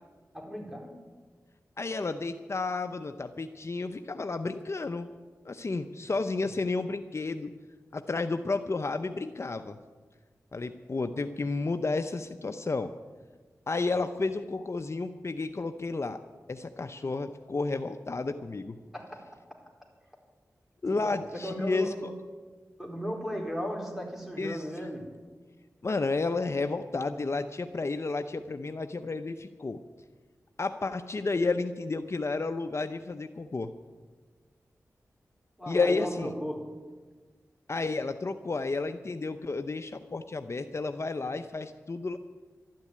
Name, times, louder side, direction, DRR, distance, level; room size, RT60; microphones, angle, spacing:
voice 1, 0.3-0.9 13.9-14.1 18.9-19.3 20.9-21.0 21.3-22.1 22.8-25.1 35.6-36.7, equal, 5° right, 0 dB, 4.3 m, -36 dB
voice 2, 1.8-5.1 5.4-7.5 7.9-9.8 10.5-12.9 13.7-16.2 16.5-18.8 20.8-21.9 24.4-24.7 25.8-29.8 30.6-33.7 35.7-36.3 37.7-42.2, left 3 dB, 50° left, 8 dB, 0.7 m, -31 dB
12.5 x 10.5 x 9.6 m, 1.4 s
cardioid pair, 55°, 6 cm